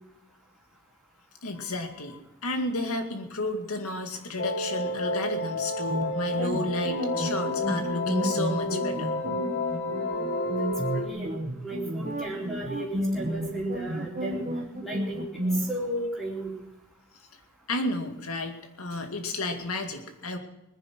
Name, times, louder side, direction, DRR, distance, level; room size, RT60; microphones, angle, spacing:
voice 1, 1.4-9.1 17.7-20.4, left 2 dB, 85° left, 6 dB, 2.1 m, -32 dB
Calm Synthesizer B, 4.4-11.1, left 1 dB, 65° left, 1.9 m, -30 dB
sound 1, 5.9-15.6, equal, 35° right, 1.4 m, -32 dB
voice 2, 10.1-11.3 11.6-14.4 14.8-15.2 15.5-16.5, right 1 dB, ahead, -4 dB, 4.0 m, -35 dB
20.0 x 10.5 x 6.1 m, 0.93 s
head